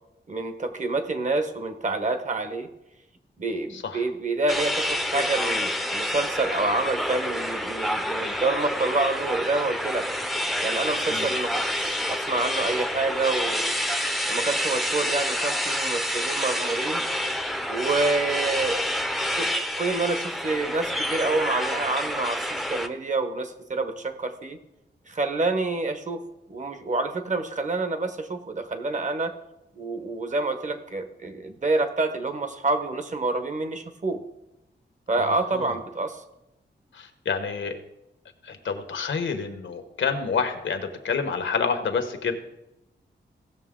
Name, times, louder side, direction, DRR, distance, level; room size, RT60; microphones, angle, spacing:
voice 1, 0.3-2.7 3.4-10.1 10.6-13.7 14.3-17.0 17.7-18.8 19.2-19.5 19.8-24.6 25.1-26.2 26.5-29.3 29.8-34.2 35.1-36.2, right 3 dB, 40° right, 8 dB, 1.1 m, -27 dB
voice 2, 3.7-4.0 11.1-11.3 35.2-35.7 36.9-37.8 38.4-42.4, left 5 dB, 85° left, 7 dB, 1.1 m, -28 dB
sound 1, 4.5-22.9, equal, ahead, 0.6 m, -28 dB
16.5 x 6.6 x 3.7 m, 0.90 s
wide cardioid pair, 120°, 19 cm